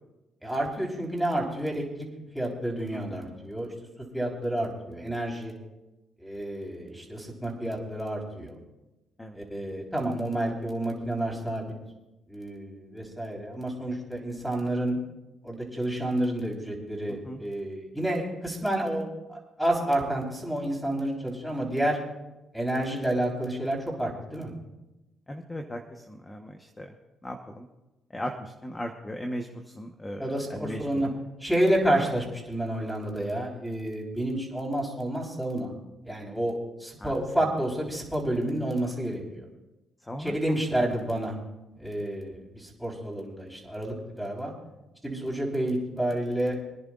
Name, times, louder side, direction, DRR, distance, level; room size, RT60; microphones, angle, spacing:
voice 1, 0.4-2.1 2.3-3.7 4.1-5.5 6.2-8.5 9.3-11.7 12.3-15.0 15.4-22.0 22.5-24.5 30.2-31.1 31.4-35.7 36.0-39.5 40.2-41.4 41.7-44.5 45.0-46.6, right 1 dB, ahead, -2 dB, 4.1 m, -29 dB
voice 2, 2.9-3.3 9.2-9.4 17.1-17.4 25.3-26.9 27.2-27.7 28.1-31.2 37.0-37.5 40.0-40.4 40.8-40.9, equal, 15° left, 3 dB, 1.1 m, -38 dB
26.5 x 10.5 x 2.5 m, 1.0 s
cardioid pair, 90°, 0 cm